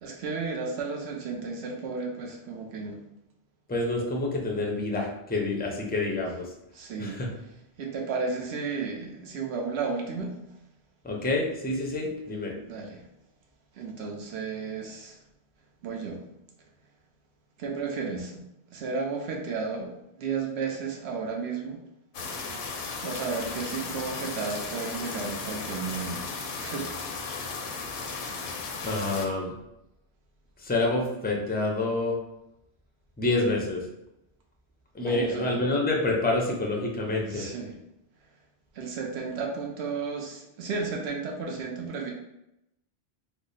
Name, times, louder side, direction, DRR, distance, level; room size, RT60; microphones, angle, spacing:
voice 1, 0.0-3.0 6.7-7.2 7.8-10.4 12.7-13.0 13.7-15.2 15.8-16.2 17.6-18.4 18.7-19.9 20.2-21.8 23.0-26.9 35.0-35.6 37.3-37.8 38.7-42.1, right 4 dB, 80° right, 0 dB, 0.9 m, -33 dB
voice 2, 3.7-6.5 7.0-7.3 11.0-12.5 28.8-29.5 30.6-32.2 33.2-33.9 34.9-37.5, left 2 dB, 15° left, -1 dB, 0.4 m, -27 dB
sound 1, 22.1-29.3, left 4 dB, 75° left, 0.8 m, -35 dB
3.3 x 2.1 x 3.9 m, 0.87 s
omnidirectional pair, 1.1 m